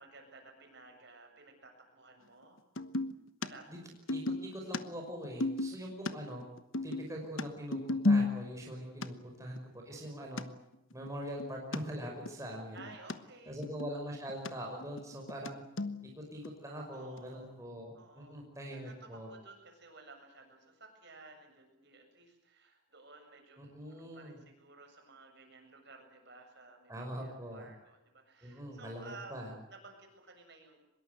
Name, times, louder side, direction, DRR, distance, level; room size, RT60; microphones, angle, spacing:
voice 1, 0.0-2.6 3.4-3.7 12.7-13.6 16.9-17.5 17.9-26.9 27.2-29.4 29.7-30.8, right 3 dB, 50° right, 4 dB, 7.4 m, -55 dB
sound 1, 2.8-3.1 3.4-3.5 3.7-6.1 6.4-8.7 9.0-9.1 9.6-9.7 10.0-10.1 10.4-10.5 10.7-11.8 12.3-12.4 12.6-13.2 13.5-14.5 14.8-15.5 15.8-16.1 16.4-16.5 17.2-17.3, left 2 dB, 65° left, 1.2 m, -33 dB
voice 2, 4.1-6.5 6.8-9.6 9.9-10.5 10.9-12.8 13.5-15.6 16.0-19.3 23.6-24.4 26.9-27.7 28.4-29.5, equal, 15° right, 0 dB, 5.6 m, -42 dB
24.5 x 22.0 x 8.1 m, 0.88 s
head